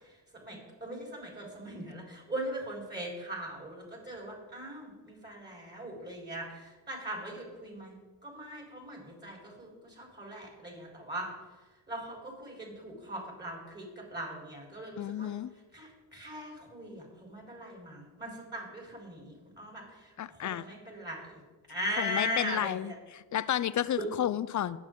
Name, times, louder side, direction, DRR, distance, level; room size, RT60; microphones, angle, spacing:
voice 1, 0.3-8.0 8.2-11.3 11.9-15.3 15.7-20.1 20.4-21.4 21.7-23.0 24.0-24.1, equal, 20° right, -2 dB, 4.1 m, -40 dB
voice 2, 15.0-15.5 20.2-20.7 22.0-24.8, left 11 dB, 40° left, 17 dB, 0.5 m, -32 dB
18.0 x 6.2 x 3.7 m, 1.3 s
supercardioid pair, 60°, 49 cm